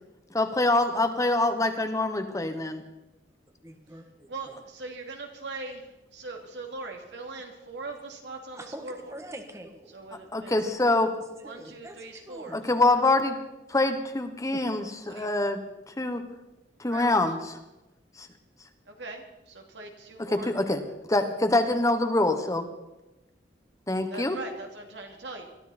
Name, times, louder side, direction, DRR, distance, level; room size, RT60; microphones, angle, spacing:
voice 1, 0.3-2.8 10.3-11.1 12.5-13.4 13.7-15.6 16.0-16.2 16.8-17.4 18.2-18.3 20.3-20.8 21.1-22.7 23.9-24.4, left 2 dB, 20° left, 7 dB, 1.2 m, -25 dB
voice 2, 3.6-4.5 8.5-10.0 11.4-12.0 12.3-12.7 14.5-14.6, right 1 dB, 15° right, 5 dB, 1.4 m, -44 dB
voice 3, 4.3-9.2 9.9-10.7 11.4-13.1 15.0-15.3 16.8-17.2 18.8-20.5 24.1-25.5, right 3 dB, 75° right, 2 dB, 2.8 m, -41 dB
22.0 x 13.5 x 4.3 m, 0.99 s
head